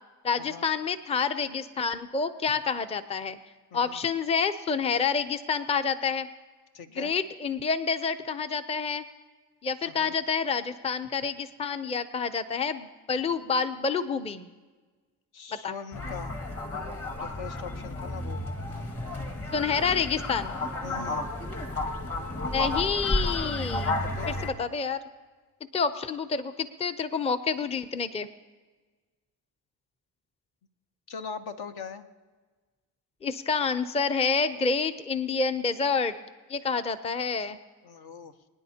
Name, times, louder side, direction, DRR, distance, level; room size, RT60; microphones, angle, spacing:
voice 1, 0.2-3.4 3.7-6.3 7.0-9.0 9.6-14.5 15.5-15.7 19.5-20.5 22.4-24.0 24.3-25.0 25.7-28.3 33.2-36.2 36.5-37.6, left 5 dB, 15° left, 11 dB, 0.5 m, -28 dB
voice 2, 3.7-4.0 6.7-7.1 9.8-10.2 15.3-16.4 17.2-18.4 20.8-21.3 24.0-24.3 31.1-32.0 37.8-38.3, left 6 dB, 70° left, 8 dB, 1.0 m, -41 dB
sound 1, 15.9-24.5, left 2 dB, 35° left, 1.9 m, -32 dB
24.0 x 9.9 x 2.8 m, 1.3 s
cardioid pair, 95°, 40 cm